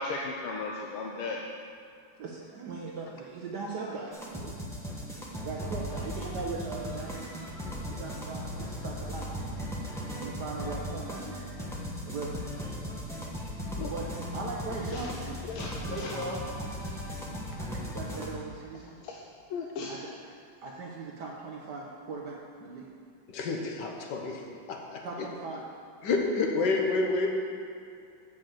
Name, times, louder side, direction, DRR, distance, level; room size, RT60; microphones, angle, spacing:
voice 1, 0.0-1.4 13.8-13.9 14.9-15.0 15.5-16.1 19.0-19.2 19.5-20.0, left 3 dB, 80° left, -1 dB, 1.6 m, -36 dB
voice 2, 2.2-4.6 5.4-7.3 7.9-9.7 10.1-11.5 12.0-12.4 13.9-15.4 15.7-16.4 17.6-19.0 19.9-22.9 25.0-25.6, right 3 dB, 60° right, -2 dB, 1.2 m, -39 dB
sound 1, 4.1-18.3, equal, 5° left, 0.4 m, -37 dB
voice 3, 23.3-24.4 24.7-25.0 26.0-27.3, left 3 dB, 60° left, 1 dB, 1.5 m, -28 dB
7.7 x 5.2 x 7.5 m, 2.4 s
omnidirectional pair, 2.4 m